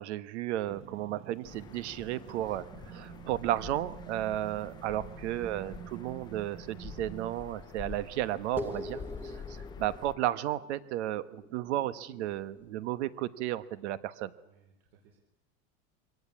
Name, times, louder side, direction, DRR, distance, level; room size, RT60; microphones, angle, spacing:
voice 1, 0.0-14.3, right 13 dB, 85° right, 15 dB, 1.3 m, -34 dB
sound 1, 0.7-7.4, right 10 dB, 40° right, 1.5 m, -48 dB
sound 2, 1.4-10.1, left 6 dB, 15° left, 0.7 m, -47 dB
Deep Drip Hit, 8.6-13.3, left 1 dB, 5° right, 1.1 m, -44 dB
voice 2, 14.4-15.2, right 6 dB, 60° right, 0 dB, 4.2 m, -63 dB
23.5 x 17.5 x 8.6 m, 0.89 s
supercardioid pair, 175°, 33 cm